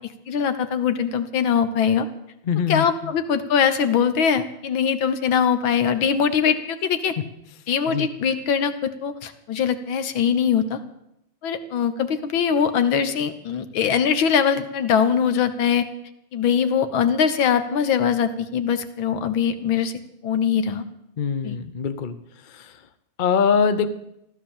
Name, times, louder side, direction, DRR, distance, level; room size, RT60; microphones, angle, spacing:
voice 1, 0.3-2.1 2.7-7.1 7.7-10.8 11.4-15.9 16.3-20.9 21.4-21.6, left 7 dB, 70° left, 10 dB, 1.9 m, -22 dB
voice 2, 2.5-3.1 7.9-8.1 21.2-22.2 22.5-22.7 23.2-23.9, left 6 dB, 85° left, 11 dB, 0.4 m, -23 dB
15.0 x 12.5 x 7.3 m, 0.81 s
omnidirectional pair, 2.3 m